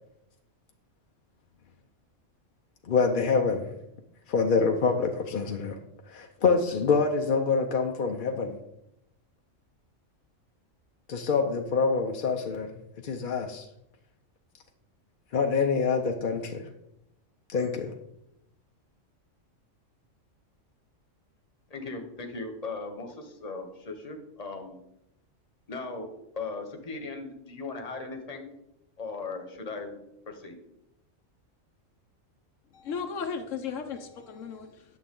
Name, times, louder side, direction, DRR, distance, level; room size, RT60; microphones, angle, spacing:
voice 1, 2.8-3.7 4.3-5.8 6.1-8.6 11.1-12.7 13.0-13.6 15.3-16.6 17.5-17.9, left 5 dB, 50° left, 0.7 m, -26 dB
voice 2, 21.7-24.8 25.7-26.1 26.3-28.4 29.0-30.0 30.3-30.6, left 3 dB, 30° left, 1.2 m, -38 dB
voice 3, 32.7-34.8, left 6 dB, 75° left, 1.1 m, -35 dB
9.2 x 6.9 x 3.7 m
omnidirectional pair, 1.3 m